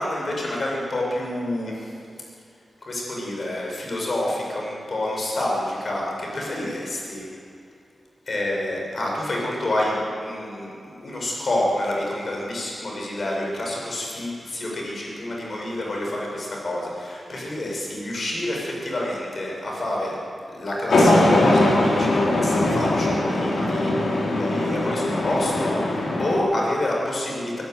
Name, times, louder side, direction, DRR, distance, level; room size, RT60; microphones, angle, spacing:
voice 1, 0.0-2.0 2.8-7.2 8.3-20.2 20.5-27.6, left 1 dB, 50° left, -2 dB, 6.7 m, -28 dB
sound 1, 20.9-26.4, left 1 dB, 80° left, 4.3 m, -20 dB
23.0 x 12.5 x 9.6 m, 2.5 s
wide cardioid pair, 95°, 0 cm